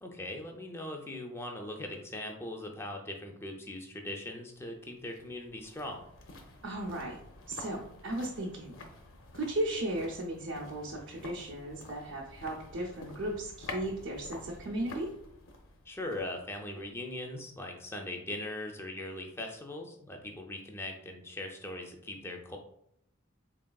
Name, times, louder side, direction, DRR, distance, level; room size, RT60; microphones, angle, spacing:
voice 1, 0.0-6.0 15.9-22.6, left 1 dB, 10° left, 2 dB, 0.4 m, -40 dB
sound 1, 4.5-17.6 17.9-18.0, left 2 dB, 70° left, 0.6 m, -49 dB
voice 2, 6.6-7.2 7.5-8.8 9.3-15.1, right 1 dB, 60° right, -2 dB, 0.6 m, -36 dB
3.9 x 3.6 x 2.3 m, 0.76 s
head